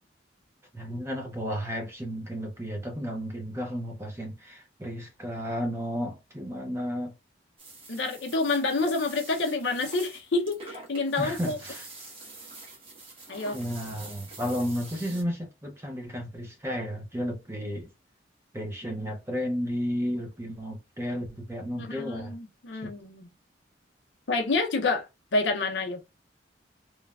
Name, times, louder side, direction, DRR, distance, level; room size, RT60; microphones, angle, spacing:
voice 1, 0.7-7.1 11.2-11.9 13.5-17.9 18.5-22.4 22.8-22.9, equal, 15° right, 0.6 m, -33 dB
sound 1, 7.6-15.2, right 3 dB, 30° right, 1.0 m, -46 dB
voice 2, 7.9-11.6 13.3-13.6 21.8-23.3 24.3-26.0, left 3 dB, 75° left, 0.6 m, -28 dB
3.1 x 2.1 x 2.3 m
head